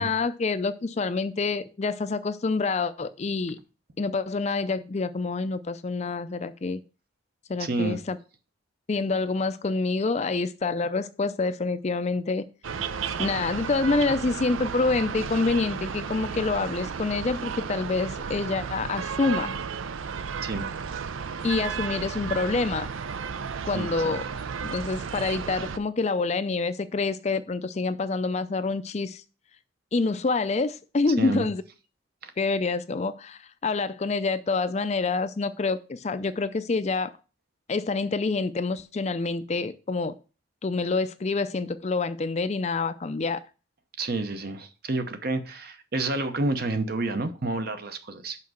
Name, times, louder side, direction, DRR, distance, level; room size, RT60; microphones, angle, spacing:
voice 1, 0.0-3.6 4.0-6.8 7.5-8.2 8.9-12.4 13.2-19.6 21.4-22.9 23.7-24.2 24.6-29.2 29.9-31.6 32.4-37.1 37.7-40.1 40.6-43.4, left 3 dB, 35° left, 0.4 m, -27 dB
voice 2, 7.6-8.0 20.4-20.7 23.7-24.2 31.2-31.5 32.2-32.3 44.0-48.4, right 2 dB, 50° right, 0.8 m, -29 dB
sound 1, 12.6-25.8, right 6 dB, 80° right, 0.5 m, -33 dB
5.8 x 5.2 x 6.2 m
head